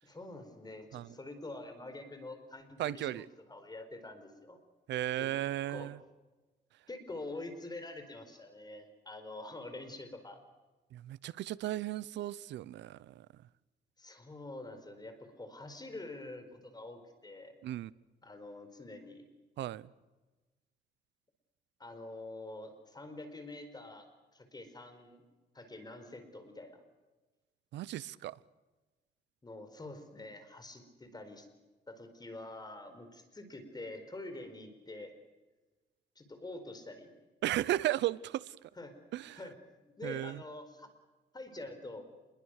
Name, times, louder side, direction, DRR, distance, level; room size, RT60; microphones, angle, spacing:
voice 1, 0.0-4.6 5.2-5.3 5.7-5.9 6.9-10.4 14.0-17.6 18.2-19.2 21.8-24.1 24.3-25.2 25.5-26.8 29.4-31.5 31.9-35.1 36.2-37.1 38.8-38.9 39.3-39.6 39.8-40.9 41.3-42.1, left 2 dB, 20° left, 8 dB, 4.6 m, -46 dB
voice 2, 2.8-3.2 4.9-6.0 10.9-13.3 17.6-17.9 19.6-19.9 27.7-28.4 37.4-38.5 39.1-39.4 40.0-40.4, right 14 dB, 85° right, 20 dB, 0.8 m, -35 dB
27.0 x 22.0 x 6.5 m, 1.2 s
cardioid pair, 95°, 18 cm